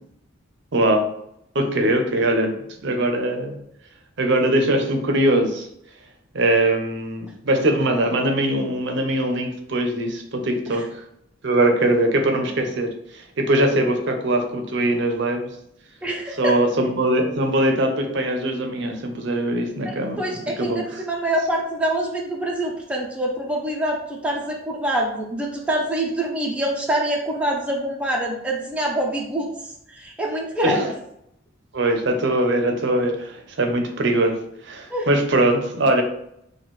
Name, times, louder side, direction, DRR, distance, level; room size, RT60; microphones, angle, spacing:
voice 1, 0.7-1.1 1.5-2.5 2.8-3.5 4.2-5.7 6.3-11.0 11.4-15.5 16.4-21.0 30.6-30.9 31.7-34.4 34.6-36.0, right 1 dB, 60° right, 4 dB, 0.6 m, -21 dB
voice 2, 16.0-16.6 19.8-29.5 29.9-30.9 34.9-35.1, right 1 dB, 5° right, -1 dB, 0.5 m, -25 dB
6.0 x 2.3 x 3.1 m, 0.76 s
head